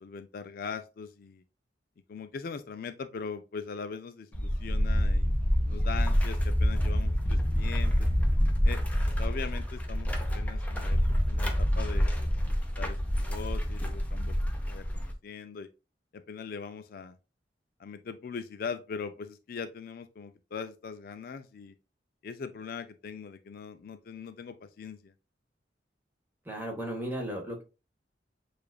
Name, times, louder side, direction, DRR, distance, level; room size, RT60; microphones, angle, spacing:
voice 1, 0.0-1.4 2.1-5.3 5.7-8.1 8.6-8.8 9.2-11.0 11.3-14.4 14.7-15.7 16.1-17.2 17.8-21.7 22.2-25.1, left 5 dB, 55° left, 0.3 m, -41 dB
sound 1, 4.3-15.1, equal, 10° left, 0.6 m, -27 dB
voice 2, 26.5-27.6, right 1 dB, 10° right, 1.0 m, -35 dB
6.6 x 2.4 x 2.3 m
head